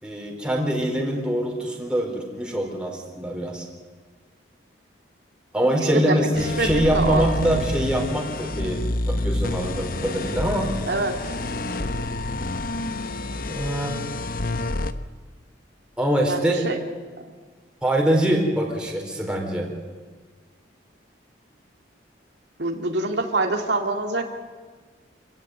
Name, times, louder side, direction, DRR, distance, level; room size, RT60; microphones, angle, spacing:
voice 1, 0.0-3.7 5.5-6.3 6.6-10.7 13.5-13.9 16.0-16.7 17.8-19.7, right 1 dB, 5° right, 0 dB, 4.2 m, -24 dB
voice 2, 5.8-6.3 6.6-7.3 10.8-11.1 11.5-11.7 16.3-16.8 17.2-17.3 22.6-24.2, right 2 dB, 65° right, 3 dB, 2.3 m, -25 dB
sound 1, 6.3-14.9, left 2 dB, 50° left, 1.0 m, -28 dB
26.5 x 16.0 x 9.2 m, 1.5 s
head